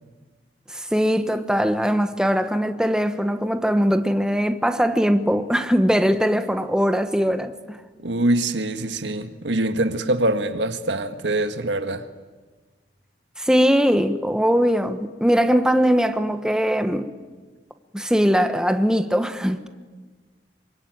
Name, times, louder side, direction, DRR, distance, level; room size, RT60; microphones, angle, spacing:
voice 1, 0.7-7.8 13.4-17.1 17.9-19.7, equal, 5° right, 1.1 m, -21 dB
voice 2, 8.0-12.0, right 1 dB, 85° right, 1.7 m, -24 dB
26.5 x 24.0 x 9.3 m
head